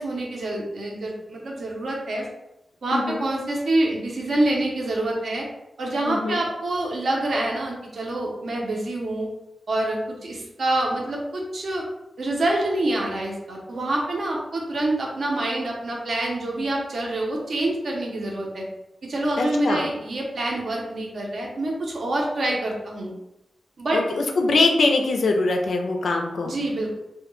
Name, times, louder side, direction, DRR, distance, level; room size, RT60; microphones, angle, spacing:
voice 1, 0.0-2.3 2.8-5.5 5.8-9.3 9.7-11.8 12.2-18.7 19.0-23.1 23.8-24.0 26.4-27.0, right 1 dB, 60° right, -1 dB, 0.6 m, -26 dB
voice 2, 2.9-3.2 6.1-6.4 19.4-19.8 23.9-26.6, left 3 dB, 80° left, 3 dB, 0.3 m, -22 dB
2.2 x 2.1 x 3.0 m, 0.90 s
wide cardioid pair, 165°, 0 cm